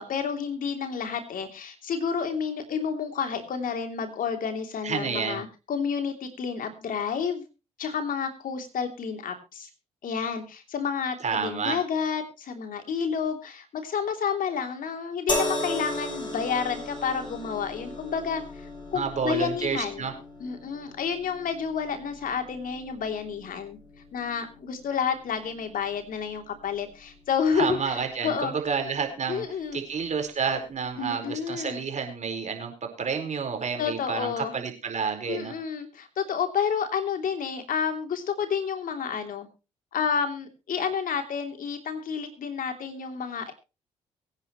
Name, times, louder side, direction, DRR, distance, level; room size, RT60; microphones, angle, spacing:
voice 1, 0.0-7.4 7.8-9.7 10.0-20.1 20.4-23.8 24.1-28.5 29.3-29.8 31.0-31.8 33.8-34.5 35.3-39.5 39.9-43.5, left 6 dB, 60° left, 6 dB, 3.0 m, -30 dB
voice 2, 4.8-5.4 11.2-11.8 18.9-20.1 27.5-29.4 29.7-32.7 33.0-35.5, right 6 dB, 50° right, 5 dB, 4.5 m, -30 dB
sound 1, 15.3-28.6 29.6-29.7, left 1 dB, 30° left, 7.6 m, -37 dB
23.0 x 9.6 x 3.1 m, 0.30 s
hypercardioid pair, 50°, 16 cm